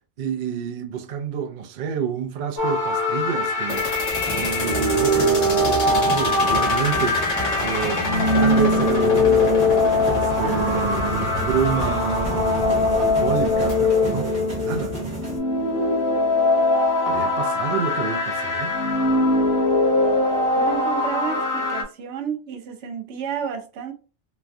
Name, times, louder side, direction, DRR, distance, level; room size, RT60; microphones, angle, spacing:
voice 1, 0.2-9.7 10.1-14.3 14.6-15.0 17.1-18.7, right 7 dB, 60° right, 0.5 m, -29 dB
sound 1, 2.6-21.8, left 2 dB, 55° left, 1.0 m, -22 dB
sound 2, 3.7-13.7, left 3 dB, 70° left, 1.3 m, -29 dB
sound 3, 4.1-15.4, equal, 30° right, 1.1 m, -33 dB
voice 2, 20.6-23.9, right 7 dB, 75° right, 0.9 m, -31 dB
3.1 x 2.2 x 2.5 m
omnidirectional pair, 1.2 m